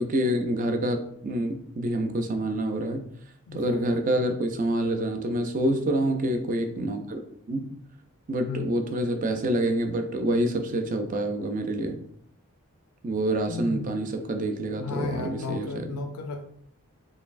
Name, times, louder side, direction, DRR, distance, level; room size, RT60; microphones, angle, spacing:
voice 1, 0.0-3.0 3.5-7.2 7.5-7.7 8.3-12.0 13.0-16.1, right 1 dB, 35° right, 5 dB, 0.4 m, -27 dB
voice 2, 3.5-3.9 8.4-8.6 13.5-13.9 14.8-16.4, left 4 dB, 90° left, 5 dB, 0.5 m, -34 dB
4.0 x 3.2 x 2.5 m, 0.69 s
head